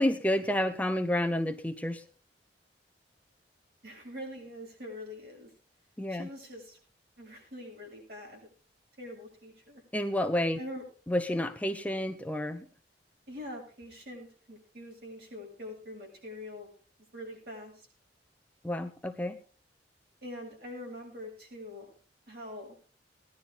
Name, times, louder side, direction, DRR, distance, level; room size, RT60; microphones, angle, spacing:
voice 1, 0.0-2.0 6.0-6.3 9.9-10.6 11.1-12.6 18.6-19.4, left 1 dB, 10° left, 7 dB, 0.7 m, -30 dB
voice 2, 3.8-5.5 6.1-6.8 7.2-8.5 9.0-9.8 10.6-10.8 13.3-16.7 17.1-17.9 20.2-21.9 22.3-22.8, left 1 dB, 60° right, 0 dB, 7.5 m, -44 dB
19.0 x 11.0 x 3.8 m, 0.39 s
head